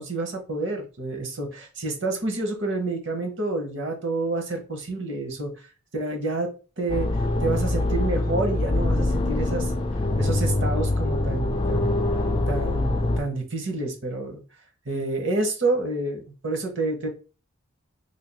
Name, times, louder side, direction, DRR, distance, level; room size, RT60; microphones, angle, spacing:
voice 1, 0.0-6.5 6.8-7.1 7.4-9.7 10.2-11.9 12.5-14.4 14.9-17.1, right 2 dB, 55° right, 3 dB, 0.9 m, -28 dB
sound 1, 6.9-13.2, left 2 dB, 25° left, 0.3 m, -24 dB
3.3 x 2.3 x 4.0 m, 0.34 s
head